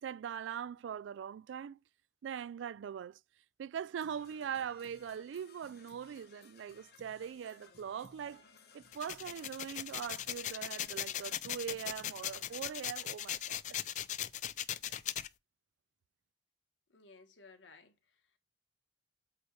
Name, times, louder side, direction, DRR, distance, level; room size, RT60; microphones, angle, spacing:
voice 1, 0.0-1.8 2.2-3.2 3.6-8.4 8.7-13.8 14.9-15.0, right 8 dB, 80° right, 0.3 m, -42 dB
Percussion / Brass instrument, 4.0-12.5, left 4 dB, 60° left, 1.0 m, -61 dB
sound 1, 8.9-15.3, left 11 dB, 40° left, 0.4 m, -39 dB
voice 2, 16.9-18.4, left 3 dB, 85° left, 1.5 m, -59 dB
8.2 x 3.1 x 4.7 m
head